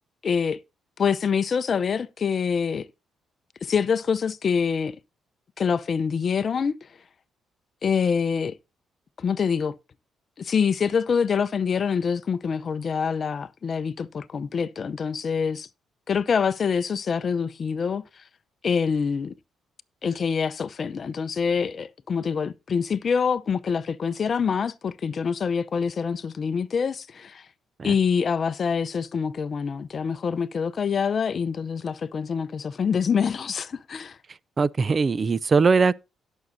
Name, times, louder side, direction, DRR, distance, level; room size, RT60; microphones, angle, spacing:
voice 1, 0.2-0.6 1.0-2.9 3.6-5.0 5.6-6.8 7.8-8.6 9.2-9.7 10.4-15.7 16.1-18.0 18.6-19.3 20.0-27.4 27.8-34.2, left 6 dB, 45° left, 0.6 m, -25 dB
voice 2, 34.6-36.0, right 4 dB, 35° right, 0.4 m, -20 dB
17.0 x 6.3 x 2.7 m
cardioid pair, 90°, 0 cm